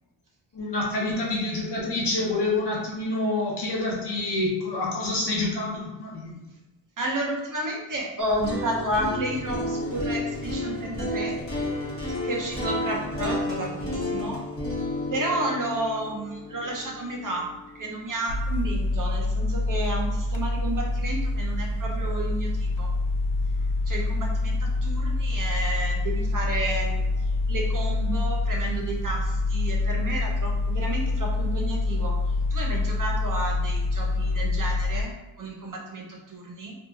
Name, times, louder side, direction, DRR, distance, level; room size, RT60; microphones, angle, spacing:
voice 1, 0.5-6.4, left 2 dB, 55° left, -4 dB, 1.1 m, -27 dB
voice 2, 7.0-11.4 12.2-14.4 15.1-22.9 23.9-36.7, right 1 dB, 40° right, -1 dB, 0.7 m, -31 dB
sound 1, 8.2-18.2, left 1 dB, 30° left, 1.0 m, -31 dB
sound 2, 18.3-35.0, left 2 dB, 75° left, 0.5 m, -26 dB
2.5 x 2.5 x 2.7 m, 1.0 s
cardioid pair, 45°, 48 cm